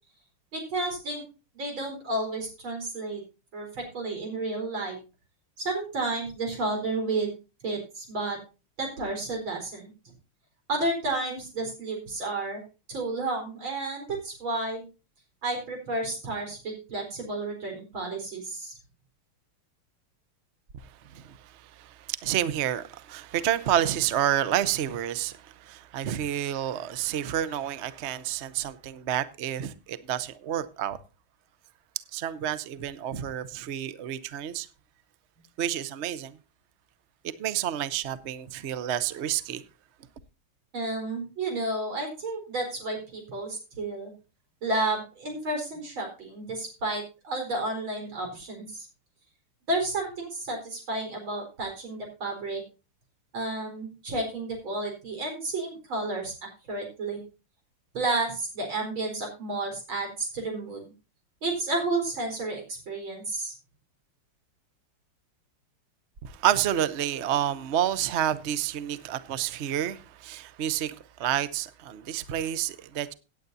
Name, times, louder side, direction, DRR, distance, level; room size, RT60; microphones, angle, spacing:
voice 1, 0.5-1.2 1.5-3.2 3.5-5.0 5.6-7.4 7.6-8.4 8.8-10.1 10.7-12.6 12.9-14.8 15.4-18.8 40.7-44.1 44.6-48.9 49.7-52.6 53.3-57.2 57.9-60.9 61.4-63.5, right 2 dB, 65° right, 5.1 m, -31 dB
voice 2, 21.1-31.0 32.1-34.7 35.6-36.4 37.2-39.6 66.2-73.1, right 11 dB, 85° right, 0.6 m, -29 dB
17.0 x 9.4 x 2.7 m
omnidirectional pair, 2.4 m